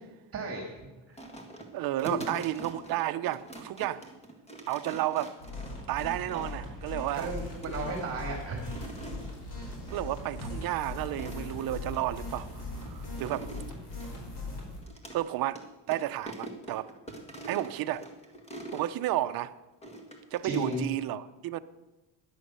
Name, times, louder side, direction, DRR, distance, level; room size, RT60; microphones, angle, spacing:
voice 1, 0.3-0.6 2.0-2.2 7.1-8.6 20.4-20.8, right 3 dB, 30° right, 2.6 m, -33 dB
sound 1, 1.2-6.7 7.2-7.8 8.5-9.3 9.9-10.2 10.4-10.5 11.0-12.0 12.5-15.2 15.5-15.6 15.9-18.9 19.8-20.9, right 2 dB, 15° left, 1.7 m, -45 dB
voice 2, 1.7-4.1 4.7-5.4 5.9-7.3 9.9-13.5 15.1-16.9 17.5-18.1 18.7-19.6 20.3-21.6, right 14 dB, 50° right, 0.7 m, -32 dB
sound 2, 5.4-14.8, left 2 dB, 55° left, 4.9 m, -40 dB
sound 3, 7.1-13.4, left 1 dB, 30° left, 4.3 m, -48 dB
12.0 x 11.0 x 8.1 m
cardioid pair, 170°, 46 cm